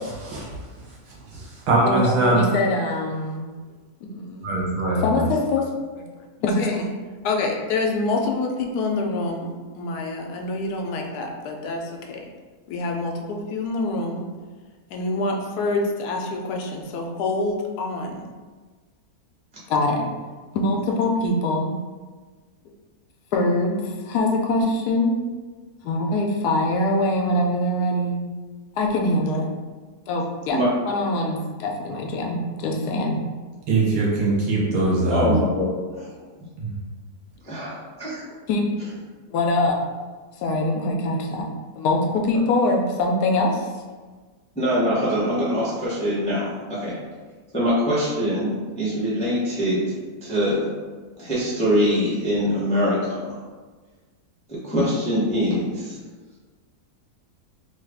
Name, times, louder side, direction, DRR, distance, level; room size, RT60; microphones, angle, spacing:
voice 1, 0.2-0.5 1.1-2.4 4.4-5.2 33.7-35.4 36.6-36.7, right 2 dB, 85° right, -5 dB, 1.4 m, -22 dB
voice 2, 1.9-3.5 4.0-5.7 6.0-6.1 6.4-6.9 7.2-12.3 12.7-14.2 14.9-18.2 19.7-20.1 20.5-21.7 23.3-25.2 25.8-28.2 28.8-29.5 30.1-33.2 38.5-38.7 39.3-39.8 40.4-41.5 41.8-43.7, left 2 dB, 85° left, 1 dB, 1.1 m, -24 dB
voice 3, 35.1-35.7 36.0-36.1 37.4-38.2 44.6-46.9 47.5-49.8 50.2-50.7 51.2-53.3 54.5-56.0, equal, 10° left, -9 dB, 0.4 m, -23 dB
3.1 x 2.3 x 3.3 m, 1.4 s
omnidirectional pair, 1.7 m